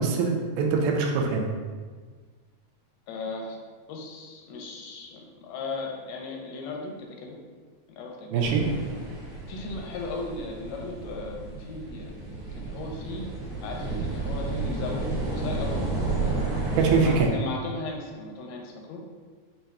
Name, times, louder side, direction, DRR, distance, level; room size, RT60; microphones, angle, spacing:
voice 1, 0.0-1.5 8.3-8.6 16.8-17.3, right 5 dB, 90° right, 1 dB, 2.5 m, -23 dB
voice 2, 3.1-3.6 3.9-7.4 7.9-8.5 9.5-12.1 12.5-13.3 13.6-15.8 17.0-19.0, left 3 dB, 85° left, 0 dB, 2.5 m, -36 dB
sound 1, 8.4-17.3, right 3 dB, 65° right, 2.3 m, -32 dB
6.9 x 2.6 x 2.3 m, 1.5 s
omnidirectional pair, 4.3 m